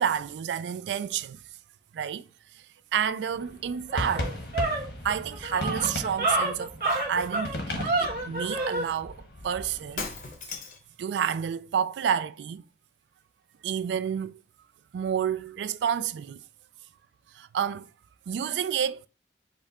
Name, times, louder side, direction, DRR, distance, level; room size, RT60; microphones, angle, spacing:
voice 1, 0.0-1.4 1.9-2.2 2.9-4.3 4.6-4.7 5.0-9.2 9.4-10.1 11.0-12.6 13.6-14.4 14.9-16.4 17.4-17.9 18.3-19.0, right 8 dB, 85° right, 0.3 m, -29 dB
sound 1, 3.3-10.3, left 1 dB, 85° left, 1.3 m, -37 dB
sound 2, 3.4-3.5 3.9-8.9, right 2 dB, 55° right, 1.2 m, -29 dB
Shatter, 10.0-10.9, left 5 dB, 45° left, 0.7 m, -36 dB
5.1 x 2.4 x 4.1 m
head